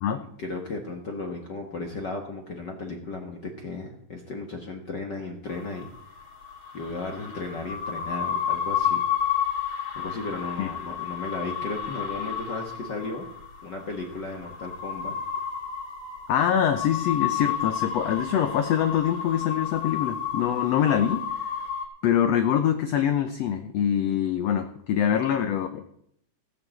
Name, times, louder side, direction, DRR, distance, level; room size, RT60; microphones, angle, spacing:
voice 1, 0.4-5.9 6.7-9.0 9.9-13.3 13.6-15.1, left 3 dB, 55° left, 2 dB, 1.2 m, -35 dB
sound 1, 5.5-21.9, left 8 dB, 35° left, 3.6 m, -31 dB
voice 2, 16.3-21.5 22.0-25.9, left 9 dB, 75° left, 8 dB, 1.5 m, -24 dB
16.0 x 6.7 x 7.6 m, 0.70 s
omnidirectional pair, 3.9 m